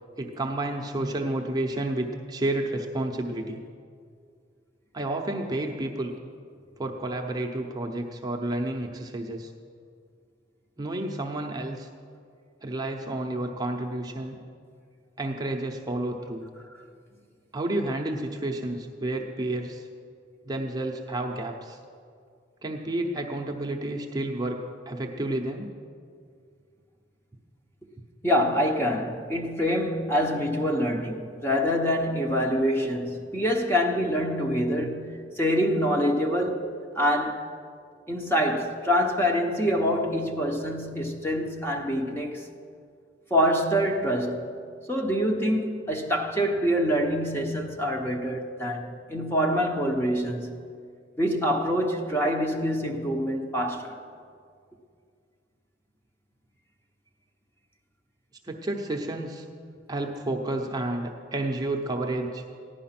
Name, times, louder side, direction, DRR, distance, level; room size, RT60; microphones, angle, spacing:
voice 1, 0.2-3.6 4.9-6.1 6.8-9.5 10.8-11.9 12.6-14.4 15.2-16.4 17.5-19.9 20.4-21.8 22.6-25.7 58.4-59.5 59.9-62.4, right 1 dB, 20° right, 0.8 m, -30 dB
voice 2, 28.2-37.5 38.1-42.5 43.3-44.5 44.9-50.6 51.2-54.0, equal, 10° left, 1.0 m, -26 dB
15.0 x 11.0 x 5.9 m
head